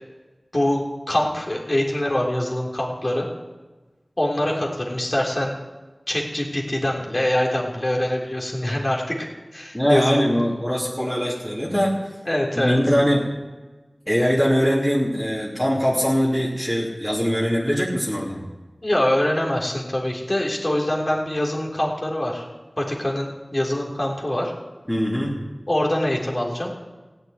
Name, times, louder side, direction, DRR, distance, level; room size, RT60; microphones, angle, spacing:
voice 1, 0.5-3.3 4.2-5.6 6.1-9.3 9.5-10.4 12.3-12.8 18.8-22.5 22.8-24.5 25.7-26.7, left 1 dB, 40° left, -2 dB, 3.7 m, -24 dB
voice 2, 9.7-11.9 12.6-13.2 14.1-18.4 24.9-25.3, equal, 15° left, -6 dB, 3.2 m, -21 dB
16.0 x 7.9 x 9.6 m, 1.2 s
wide cardioid pair, 55°, 0 cm